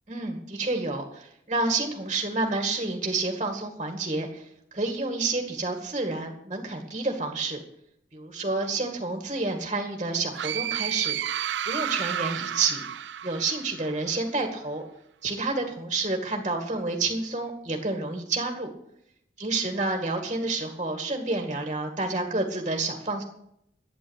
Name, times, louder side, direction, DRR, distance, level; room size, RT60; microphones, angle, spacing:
voice 1, 0.1-7.6 8.1-11.2 11.7-12.8 13.2-14.8 15.2-18.7 19.4-23.2, right 3 dB, 30° right, 3 dB, 2.1 m, -29 dB
sound 1, 10.3-14.0, right 10 dB, 90° right, 0.4 m, -31 dB
12.5 x 9.4 x 8.2 m, 0.75 s
head